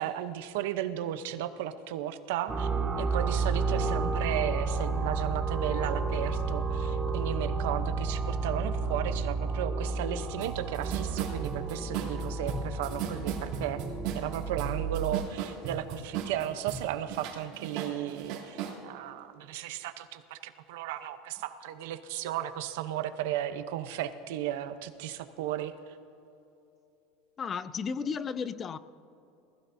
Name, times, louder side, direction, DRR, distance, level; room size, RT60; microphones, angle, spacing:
voice 1, 0.0-2.7 3.0-13.8 14.1-25.7, right 11 dB, 75° right, 0.7 m, -35 dB
sound 1, 2.5-15.1, right 4 dB, 15° right, 1.0 m, -31 dB
sound 2, 10.4-10.5 10.7-16.8 17.1-18.8, right 9 dB, 55° right, 2.7 m, -36 dB
voice 2, 27.4-28.8, left 6 dB, 20° left, 0.4 m, -33 dB
20.0 x 14.5 x 2.7 m
cardioid pair, 165°, 0 cm